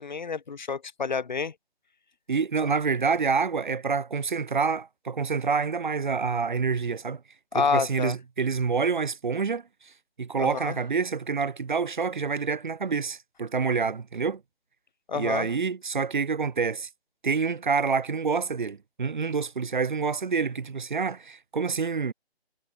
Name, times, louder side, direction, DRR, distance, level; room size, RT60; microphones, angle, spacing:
voice 1, 0.0-1.5 7.5-8.2 10.4-10.8 15.1-15.5, left 5 dB, 45° left, 1.9 m, -28 dB
voice 2, 2.3-7.2 7.5-9.6 10.2-14.4 15.1-16.9 17.2-22.1, right 5 dB, 45° right, 2.0 m, -27 dB
figure-of-eight pair, 160°, 32 cm